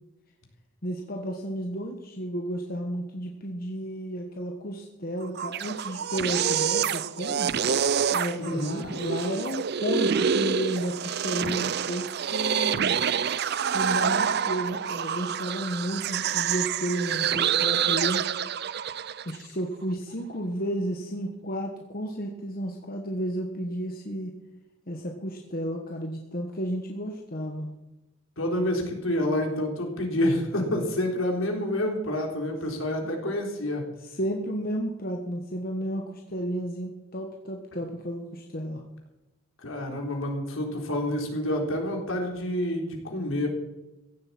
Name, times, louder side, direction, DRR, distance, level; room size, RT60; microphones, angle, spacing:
voice 1, 0.8-7.5 8.1-13.0 13.7-18.2 19.2-24.3 24.9-27.7 34.1-38.8, equal, 45° left, 2 dB, 1.3 m, -32 dB
sound 1, 5.2-19.4, right 7 dB, 50° right, 0.5 m, -27 dB
voice 2, 8.4-8.8 28.4-33.8 39.6-43.5, left 1 dB, 70° left, 1 dB, 3.8 m, -28 dB
15.5 x 7.8 x 8.6 m, 0.99 s
head